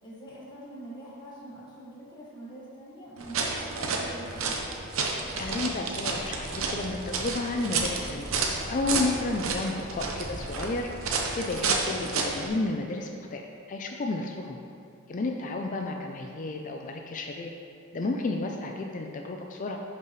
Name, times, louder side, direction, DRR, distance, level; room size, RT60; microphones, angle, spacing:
voice 1, 0.0-4.6, right 1 dB, 20° left, -8 dB, 1.7 m, -44 dB
sound 1, 3.2-12.5, right 4 dB, 75° right, 0.9 m, -31 dB
voice 2, 5.3-8.3 8.7-13.4 13.7-14.6 15.1-17.5 17.9-19.8, left 2 dB, 40° left, 2 dB, 0.4 m, -32 dB
10.5 x 5.9 x 3.2 m, 2.5 s
head